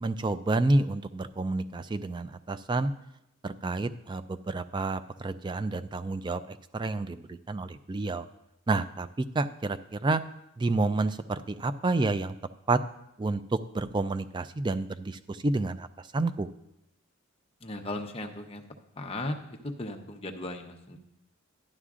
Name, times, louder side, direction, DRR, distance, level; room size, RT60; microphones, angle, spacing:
voice 1, 0.0-2.9 3.4-8.3 8.7-10.2 10.6-12.4 12.7-12.8 13.2-16.5, right 2 dB, 20° right, 12 dB, 0.3 m, -29 dB
voice 2, 17.6-18.6 19.0-19.4 19.6-21.0, left 1 dB, 25° left, 3 dB, 0.8 m, -36 dB
12.0 x 11.5 x 2.5 m, 0.88 s
head